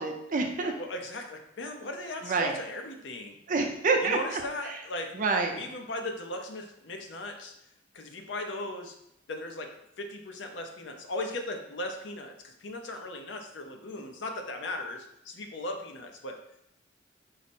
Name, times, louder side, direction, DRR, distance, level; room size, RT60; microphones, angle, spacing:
voice 1, 0.0-0.7 2.2-2.5 3.5-4.8 5.1-5.6, right 3 dB, 45° right, 3 dB, 0.5 m, -28 dB
voice 2, 0.6-3.4 4.0-5.2 5.5-7.5 7.9-9.0 9.3-16.4, left 1 dB, 70° left, 4 dB, 0.6 m, -37 dB
4.8 x 2.0 x 4.2 m, 0.79 s
head